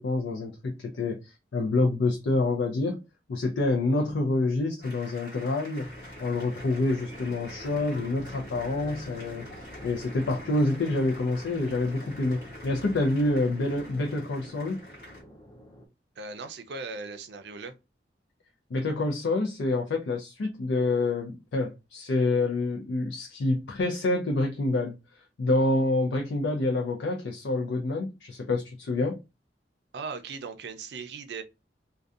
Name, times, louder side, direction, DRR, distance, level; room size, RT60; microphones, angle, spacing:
voice 1, 0.0-3.0 3.3-5.9 6.2-9.5 9.8-14.8 18.7-29.2, left 2 dB, 85° left, 0.4 m, -27 dB
sound 1, 4.8-15.2, equal, 55° left, 1.3 m, -48 dB
sound 2, 5.8-15.9, equal, 20° left, 0.4 m, -45 dB
voice 2, 16.2-17.7 29.9-31.4, right 4 dB, 70° right, 0.4 m, -38 dB
2.6 x 2.2 x 2.3 m
head